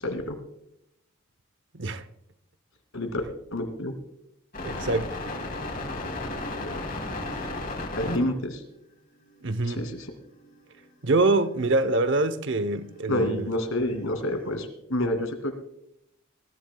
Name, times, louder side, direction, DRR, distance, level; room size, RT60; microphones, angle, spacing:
voice 1, 0.0-0.4 2.9-3.2 3.5-3.9 8.0-8.6 9.7-10.1 13.1-15.5, left 1 dB, 85° left, 2.5 m, -28 dB
sound 1, 4.5-8.2 9.3-9.4 10.2-10.9 11.6-14.5, left 2 dB, 45° left, 2.8 m, -35 dB
voice 2, 4.6-5.1 9.4-9.9 11.0-13.5, right 2 dB, 60° right, 0.8 m, -25 dB
21.5 x 14.0 x 2.3 m
head